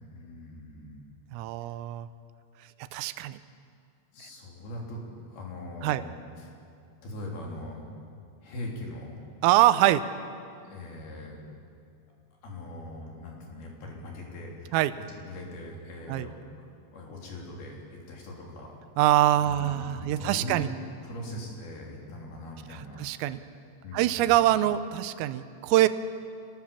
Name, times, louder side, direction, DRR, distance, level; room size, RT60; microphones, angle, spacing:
voice 1, 0.1-1.1 4.1-5.0 5.3-6.5 7.0-7.8 8.4-9.1 10.5-11.4 12.4-16.7 16.9-18.8 19.4-20.6 21.0-23.1 23.8-24.5, left 1 dB, 50° left, -1 dB, 5.1 m, -41 dB
voice 2, 1.3-2.1 2.9-3.4 5.8-6.0 9.4-10.0 14.7-14.9 16.1-16.3 19.0-20.7 22.7-23.4 23.9-25.9, right 14 dB, 85° right, 13 dB, 3.4 m, -24 dB
27.5 x 19.0 x 7.2 m, 2.3 s
omnidirectional pair, 6.0 m